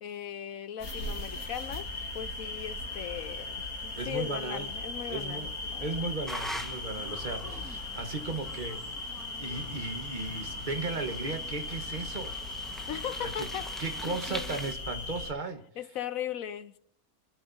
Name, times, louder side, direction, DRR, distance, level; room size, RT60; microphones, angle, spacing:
voice 1, 0.0-1.9 2.1-6.1 7.4-7.7 12.9-14.6 15.8-16.8, left 10 dB, 75° left, 1.3 m, -39 dB
sound 1, 0.8-15.3, left 2 dB, 90° left, 2.4 m, -38 dB
voice 2, 3.9-4.7 5.1-5.5 5.8-8.8 9.4-12.3 13.2-13.5 13.8-15.6, right 3 dB, 35° right, 1.4 m, -36 dB
sound 2, 6.3-14.7, equal, ahead, 1.2 m, -44 dB
25.5 x 12.5 x 2.7 m
omnidirectional pair, 1.5 m